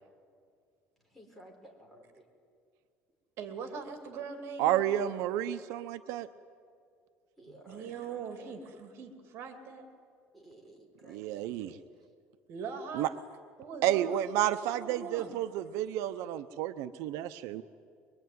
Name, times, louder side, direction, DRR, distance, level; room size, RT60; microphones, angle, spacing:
voice 1, 1.0-2.2 7.4-8.7 10.3-11.9, right 1 dB, ahead, -1 dB, 4.8 m, -55 dB
voice 2, 3.4-4.9 7.7-9.9 12.5-13.1 13.6-14.2 14.7-15.3, right 5 dB, 55° right, 6 dB, 2.6 m, -41 dB
voice 3, 4.6-6.3 11.1-11.7 12.9-13.1 13.8-17.6, right 12 dB, 75° right, 11 dB, 0.8 m, -31 dB
23.5 x 22.5 x 9.5 m, 2.2 s
cardioid pair, 165°, 5 cm